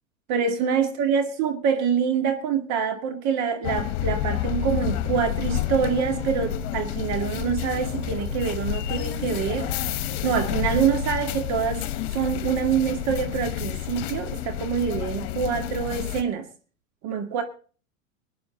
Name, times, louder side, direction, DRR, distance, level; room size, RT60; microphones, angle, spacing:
voice 1, 0.3-9.7 10.2-11.8 12.1-16.5 17.0-17.4, right 7 dB, 45° right, 6 dB, 2.1 m, -25 dB
sound 1, 3.6-16.2, left 14 dB, 50° left, 1.3 m, -30 dB
Train, 4.9-11.2, right 5 dB, 85° right, 2.4 m, -39 dB
20.5 x 10.0 x 4.0 m, 0.40 s
figure-of-eight pair, 95°, 40 cm